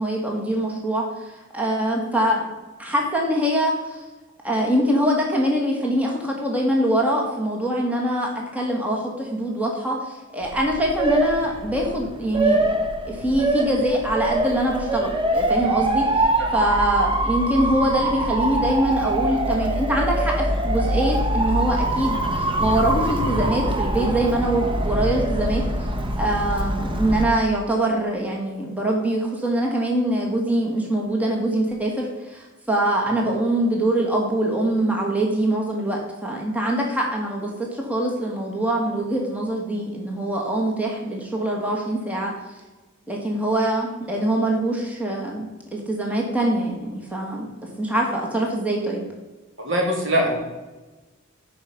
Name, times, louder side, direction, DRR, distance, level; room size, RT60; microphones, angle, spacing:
voice 1, 0.0-2.4 2.8-4.0 4.4-12.8 13.0-16.2 16.5-25.6 26.2-42.3 43.1-49.0, right 1 dB, 5° right, -1 dB, 1.5 m, -23 dB
Motor vehicle (road) / Siren, 10.4-27.2, right 1 dB, 25° right, 0.8 m, -24 dB
voice 2, 49.6-50.4, equal, 65° right, 0 dB, 2.4 m, -22 dB
10.5 x 5.0 x 5.8 m, 1.2 s
head